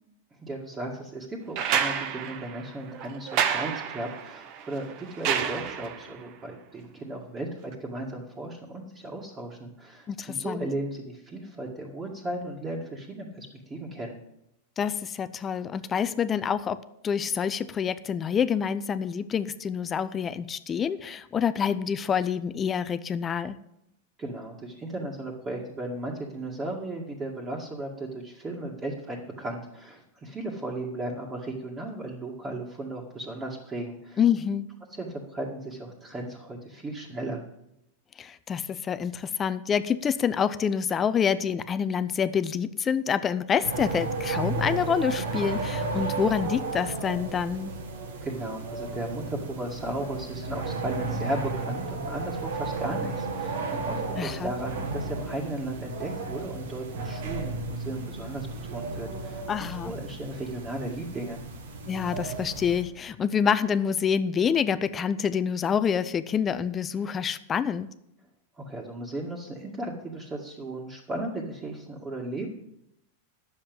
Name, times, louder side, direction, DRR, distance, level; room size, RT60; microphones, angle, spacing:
voice 1, 0.4-14.2 24.2-34.2 34.9-37.4 48.2-61.4 68.6-72.5, right 1 dB, 20° right, -4 dB, 2.1 m, -36 dB
sound 1, 1.6-6.2 7.7-7.8, right 8 dB, 50° right, 1.0 m, -30 dB
voice 2, 10.1-10.6 14.8-23.6 34.2-34.8 38.2-47.7 54.2-54.5 59.5-59.9 61.9-67.9, left 7 dB, 25° left, 14 dB, 0.6 m, -27 dB
sound 2, 43.6-62.8, right 3 dB, 75° right, 1.9 m, -33 dB
9.9 x 7.3 x 7.8 m, 0.81 s
hypercardioid pair, 120°, 0 cm